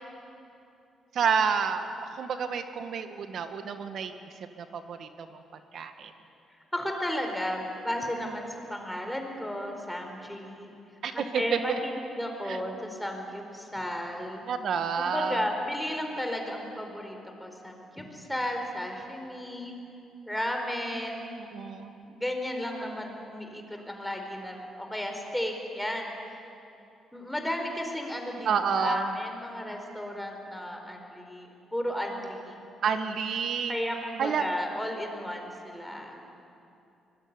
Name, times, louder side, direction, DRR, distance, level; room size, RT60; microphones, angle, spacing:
voice 1, 1.1-4.1 4.6-5.4 5.7-6.1 11.0-11.6 12.5-12.6 14.5-15.4 21.5-22.0 28.5-29.1 32.8-33.8 34.2-34.4, right 6 dB, 65° right, 8 dB, 1.9 m, -29 dB
voice 2, 6.7-10.7 11.1-14.4 15.0-19.7 20.3-21.4 22.0-26.2 27.1-28.5 28.8-32.6 33.7-36.2, left 1 dB, 5° left, 3 dB, 4.6 m, -34 dB
24.5 x 20.5 x 9.8 m, 2.8 s
cardioid pair, 90°, 0 cm